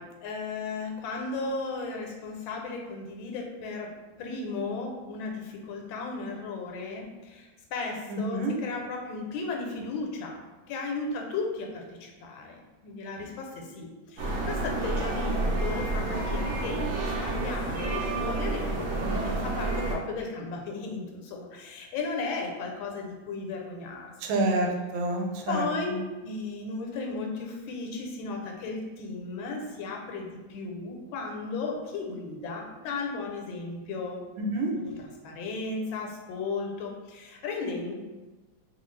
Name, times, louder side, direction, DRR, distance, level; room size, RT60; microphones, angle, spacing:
voice 1, 0.0-3.9 4.2-16.8 17.1-24.1 25.5-25.9 26.2-34.2 34.7-37.9, left 3 dB, 90° left, 1 dB, 1.4 m, -35 dB
voice 2, 8.1-8.5 24.2-25.6 25.9-26.0 34.4-34.7, right 2 dB, 90° right, 1 dB, 1.4 m, -28 dB
sound 1, 14.2-20.0, right 2 dB, 70° right, 0.8 m, -29 dB
2.9 x 2.3 x 3.1 m, 1.2 s
omnidirectional pair, 2.1 m